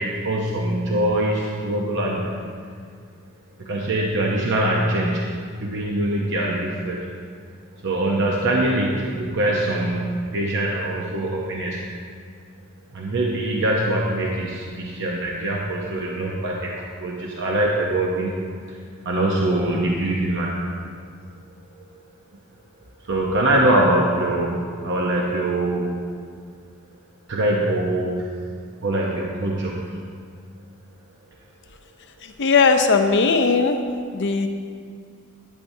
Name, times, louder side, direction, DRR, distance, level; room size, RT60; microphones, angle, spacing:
voice 1, 0.0-2.2 3.6-5.3 5.6-7.1 7.8-11.8 12.9-18.3 18.7-18.8 19.0-20.7 23.1-26.0 27.3-28.3 28.8-30.0, right 1 dB, 55° right, -2 dB, 0.7 m, -23 dB
voice 2, 32.2-33.8 34.1-34.5, left 4 dB, 55° left, 6 dB, 0.6 m, -18 dB
11.5 x 8.6 x 2.7 m, 2.1 s
head